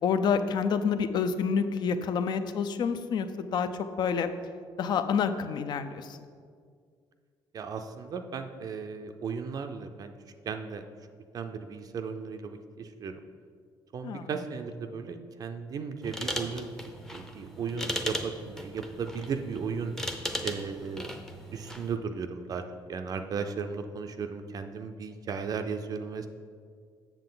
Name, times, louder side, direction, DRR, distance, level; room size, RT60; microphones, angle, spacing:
voice 1, 0.0-4.3 4.8-6.2 14.0-14.3, left 6 dB, 55° left, 10 dB, 0.5 m, -28 dB
voice 2, 7.5-10.1 10.5-10.8 11.3-13.1 13.9-16.7 17.1-19.9 20.4-21.1 21.5-22.6 22.9-26.3, right 5 dB, 45° right, 6 dB, 0.4 m, -35 dB
sound 1, 16.0-21.9, equal, 5° left, 0.6 m, -37 dB
7.5 x 6.9 x 3.8 m, 2.1 s
cardioid pair, 125°, 9 cm